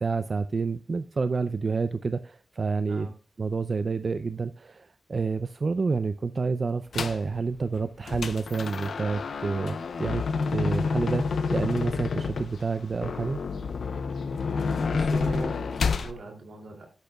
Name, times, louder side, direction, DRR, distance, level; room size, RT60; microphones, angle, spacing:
voice 1, 0.0-3.1 3.4-10.2 10.5-13.4, right 4 dB, 60° right, 11 dB, 0.5 m, -29 dB
sound 1, 6.9-7.3 7.7-16.1, left 5 dB, 85° left, 0.7 m, -29 dB
voice 2, 14.9-16.9, right 3 dB, 90° right, 2 dB, 2.7 m, -40 dB
13.5 x 10.5 x 2.3 m, 0.36 s
cardioid pair, 60°, 0 cm